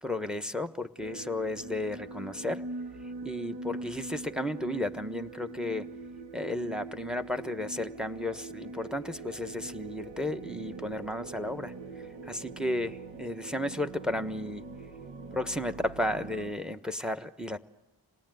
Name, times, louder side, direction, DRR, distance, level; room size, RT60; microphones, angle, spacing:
voice 1, 0.0-2.6 3.2-5.9 6.3-11.7 12.3-14.6 15.3-17.6, left 1 dB, ahead, 10 dB, 1.2 m, -33 dB
sound 1, 1.0-16.5, right 3 dB, 75° right, 1.8 m, -42 dB
26.5 x 19.0 x 9.3 m, 1.0 s
cardioid pair, 55°, 45 cm